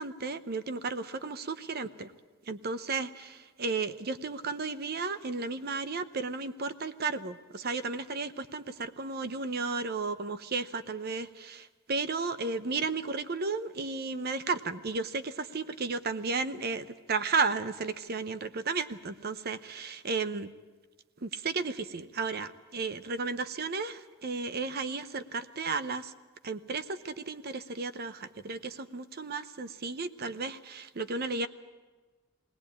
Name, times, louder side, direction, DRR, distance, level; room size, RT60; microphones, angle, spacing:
voice 1, 0.0-2.1 2.5-20.5 21.2-26.1 26.4-31.5, right 4 dB, 50° right, 12 dB, 0.8 m, -34 dB
20.0 x 18.5 x 8.7 m, 1.3 s
head